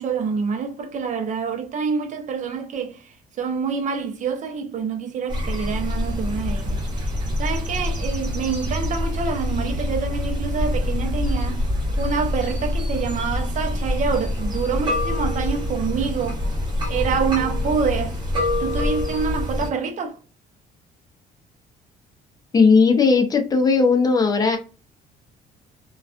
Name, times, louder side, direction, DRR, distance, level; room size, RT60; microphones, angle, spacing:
voice 1, 0.0-3.0 3.4-6.8 7.4-11.6 12.0-16.4 16.9-18.1 18.6-20.2, right 5 dB, 45° right, 0.6 m, -26 dB
sound 1, 5.3-19.7, left 1 dB, 25° right, 1.1 m, -25 dB
voice 2, 22.5-24.6, left 4 dB, 20° left, 0.6 m, -17 dB
2.3 x 2.3 x 2.4 m
cardioid pair, 110°, 17 cm